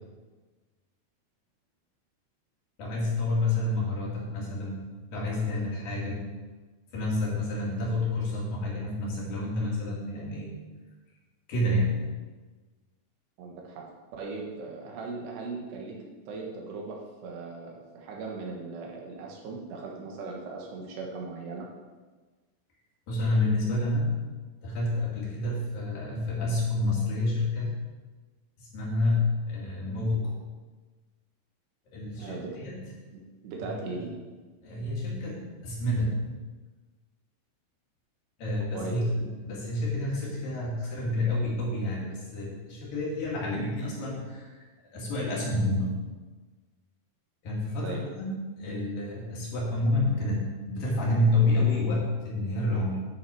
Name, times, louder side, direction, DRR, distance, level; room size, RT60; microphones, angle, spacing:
voice 1, 2.8-4.8 5.1-6.3 6.9-10.5 11.5-12.0 23.1-24.2 24.6-27.7 28.6-30.4 31.9-32.8 33.6-33.8 34.6-36.3 38.4-44.7 44.9-46.0 47.4-53.0, left 2 dB, 60° left, -4 dB, 3.4 m, -29 dB
voice 2, 13.4-16.0 16.3-21.7 32.2-32.5 33.1-34.1 38.7-39.0 47.8-48.0, right 3 dB, 75° right, -1 dB, 3.4 m, -38 dB
10.5 x 6.5 x 4.9 m, 1.3 s
omnidirectional pair, 5.0 m